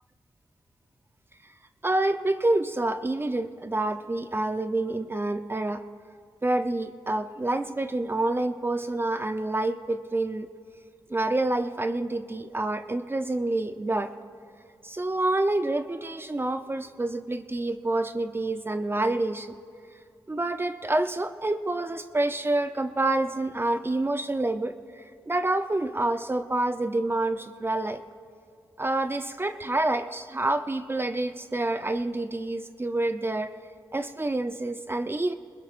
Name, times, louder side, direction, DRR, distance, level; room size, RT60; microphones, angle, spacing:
voice 1, 1.8-5.8 6.4-10.5 11.1-14.1 14.8-19.5 20.3-28.0 28.8-33.5 33.9-35.3, right 2 dB, 25° right, 9 dB, 0.6 m, -27 dB
21.5 x 20.5 x 2.5 m, 2.4 s
cardioid pair, 50°, 9 cm